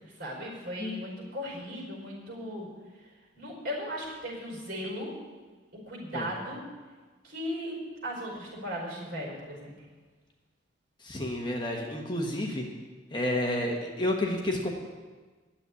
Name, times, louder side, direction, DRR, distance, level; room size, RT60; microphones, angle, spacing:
voice 1, 0.0-2.7 2.9-3.1 3.3-5.1 5.9-6.6 7.2-7.7 8.0-9.7, equal, 50° right, -1 dB, 4.8 m, -37 dB
voice 2, 11.0-12.6 13.1-14.8, left 1 dB, 25° left, 1 dB, 1.3 m, -30 dB
10.0 x 7.9 x 9.7 m, 1.4 s
head